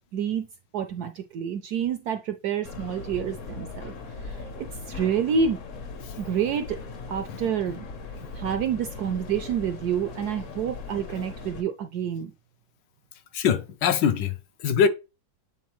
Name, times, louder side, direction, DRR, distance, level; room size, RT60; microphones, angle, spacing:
voice 1, 0.1-0.5 0.7-5.6 6.2-6.8 7.1-7.9 8.3-12.3, right 7 dB, 75° right, 0.9 m, -28 dB
sound 1, 2.6-11.6, left 4 dB, 55° left, 0.9 m, -39 dB
voice 2, 13.3-14.9, left 7 dB, 75° left, 1.2 m, -23 dB
8.3 x 3.6 x 3.1 m
omnidirectional pair, 2.1 m